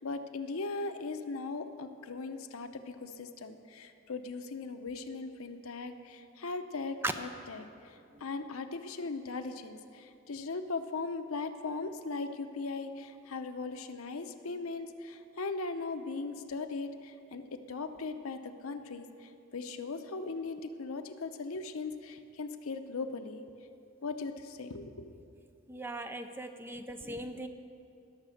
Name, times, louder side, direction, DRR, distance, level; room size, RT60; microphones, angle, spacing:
voice 1, 0.0-23.4 24.0-25.2, left 3 dB, 80° left, 8 dB, 0.7 m, -39 dB
voice 2, 25.7-27.5, right 2 dB, 10° right, 7 dB, 0.4 m, -38 dB
19.0 x 6.7 x 6.4 m, 2.6 s
head